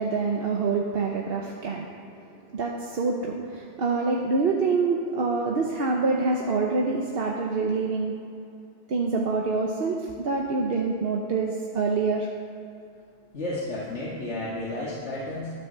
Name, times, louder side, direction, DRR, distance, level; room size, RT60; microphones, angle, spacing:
voice 1, 0.0-1.9 2.5-8.1 8.9-12.3, right 4 dB, 60° right, 0 dB, 1.1 m, -26 dB
voice 2, 13.3-15.5, left 1 dB, 75° left, -7 dB, 2.0 m, -32 dB
11.5 x 9.4 x 6.7 m, 2.6 s
omnidirectional pair, 1.2 m